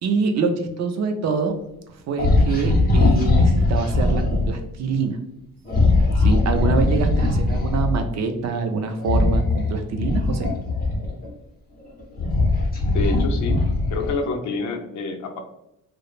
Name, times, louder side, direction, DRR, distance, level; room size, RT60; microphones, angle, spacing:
voice 1, 0.0-1.5 2.1-5.2 6.2-10.5, right 5 dB, 55° right, 6 dB, 0.4 m, -25 dB
sound 1, 2.2-4.5 5.7-8.0 9.0-11.3 11.9-14.2, left 2 dB, 25° left, 0.7 m, -20 dB
voice 2, 12.8-13.6 13.9-15.4, left 3 dB, 60° left, 4 dB, 0.5 m, -27 dB
3.0 x 2.0 x 2.4 m, 0.85 s
cardioid pair, 115°, 33 cm